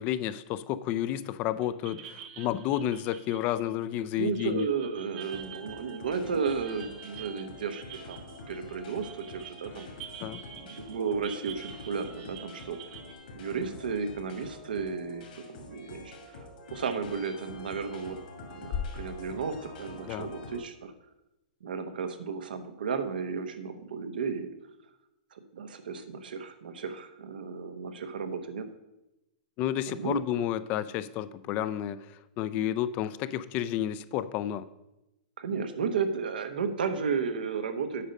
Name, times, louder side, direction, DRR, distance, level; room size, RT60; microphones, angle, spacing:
voice 1, 0.0-4.7 10.2-10.4 20.1-20.3 29.6-32.1 32.4-34.7, left 11 dB, 35° left, 15 dB, 0.4 m, -31 dB
sound 1, 1.1-1.3 1.6-13.1, right 9 dB, 45° right, 0.9 m, -48 dB
voice 2, 4.2-8.2 8.5-9.9 10.6-13.0 13.3-16.4 16.7-18.2 18.4-20.9 21.6-24.5 25.3-28.7 29.9-30.2 35.4-38.1, right 5 dB, 85° right, 9 dB, 0.9 m, -33 dB
sound 2, 5.1-20.6, left 2 dB, 70° left, 2.3 m, -47 dB
sound 3, 18.7-20.8, left 7 dB, 50° left, 0.9 m, -39 dB
8.5 x 5.2 x 5.3 m, 0.94 s
hypercardioid pair, 145°, 5 cm